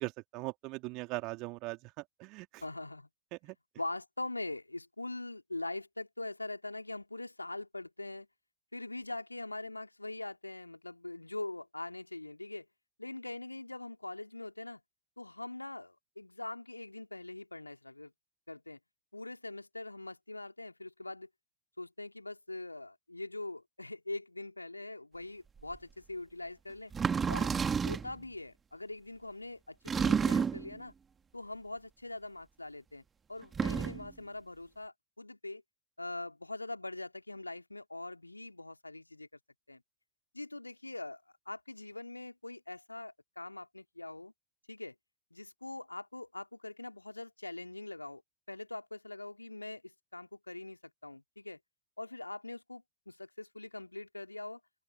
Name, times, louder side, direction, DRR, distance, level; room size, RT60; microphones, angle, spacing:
voice 1, 0.0-1.9 2.2-2.6 3.3-3.5, right 24 dB, 40° right, 3.1 m, -40 dB
voice 2, 2.6-3.1 3.8-8.3 8.7-12.7 13.0-14.8 15.2-18.1 18.5-18.8 19.1-21.3 21.8-26.9 27.3-27.5 27.8-30.9 31.3-33.0 33.3-35.6 36.0-39.3 39.7-39.8 40.3-44.3 44.7-44.9 45.3-48.2 48.5-51.6 52.0-54.6, left 2 dB, 85° left, 2.8 m, -43 dB
sound 1, 25.7-25.8 26.9-28.1 29.9-30.7 33.4-34.1, right 6 dB, 20° right, 2.3 m, -30 dB
open air
figure-of-eight pair, 90°, 0 cm